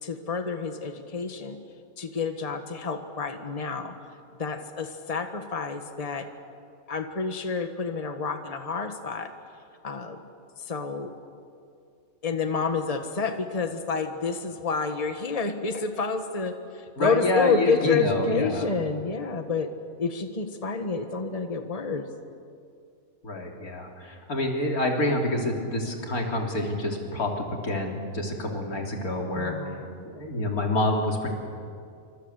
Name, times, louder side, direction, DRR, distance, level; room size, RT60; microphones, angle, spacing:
voice 1, 0.0-1.6 2.0-3.9 4.4-6.3 6.9-9.3 9.8-10.2 10.6-11.1 12.2-19.7 20.0-22.0 29.3-29.9, left 4 dB, 25° left, 7 dB, 1.5 m, -29 dB
voice 2, 17.0-18.6 23.2-29.5 30.0-31.3, left 2 dB, 85° left, 1 dB, 3.9 m, -27 dB
26.5 x 25.0 x 8.2 m, 2.3 s
omnidirectional pair, 1.5 m